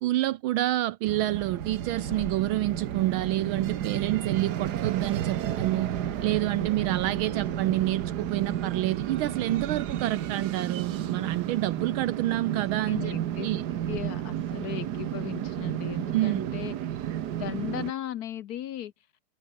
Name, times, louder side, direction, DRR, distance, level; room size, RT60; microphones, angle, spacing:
voice 1, 0.0-5.9 6.2-13.1 13.4-13.6 16.1-16.5, right 15 dB, 75° right, 1.4 m, -28 dB
sound 1, 1.1-17.9, right 11 dB, 60° right, 1.3 m, -32 dB
sound 2, 1.3-7.6, right 4 dB, 40° right, 3.1 m, -54 dB
sound 3, 1.4-10.0, left 2 dB, 50° left, 8.3 m, -49 dB
voice 2, 12.9-13.5 13.9-16.7 17.4-18.9, left 11 dB, 65° left, 0.9 m, -36 dB
omnidirectional pair, 2.3 m